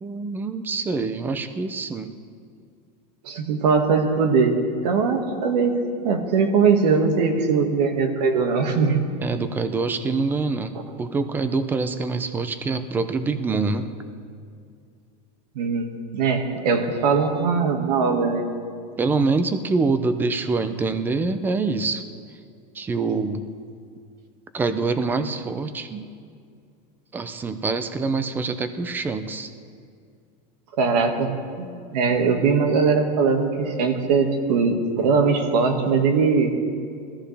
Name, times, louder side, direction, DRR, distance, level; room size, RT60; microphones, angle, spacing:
voice 1, 0.0-2.2 9.2-13.9 19.0-22.0 22.7-23.4 24.5-26.1 27.1-29.5, right 4 dB, 10° right, 10 dB, 0.4 m, -25 dB
voice 2, 3.2-4.6 4.8-5.8 6.0-9.0 15.6-18.4 30.8-31.3 31.6-36.5, right 5 dB, 75° right, 4 dB, 1.9 m, -20 dB
21.0 x 14.0 x 3.4 m, 2.3 s
supercardioid pair, 165°, 21 cm